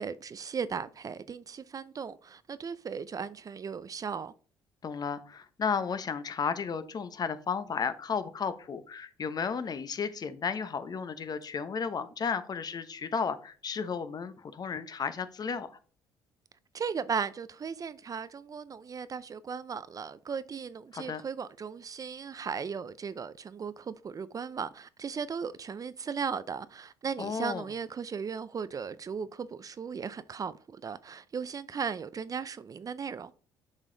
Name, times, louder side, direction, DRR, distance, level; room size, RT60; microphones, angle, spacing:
voice 1, 0.0-4.3 16.7-33.3, right 6 dB, 35° right, 0.5 m, -37 dB
voice 2, 4.8-15.7 20.9-21.2 27.2-27.7, left 6 dB, 40° left, 0.9 m, -33 dB
7.2 x 4.9 x 3.9 m
hypercardioid pair, 65°, 10 cm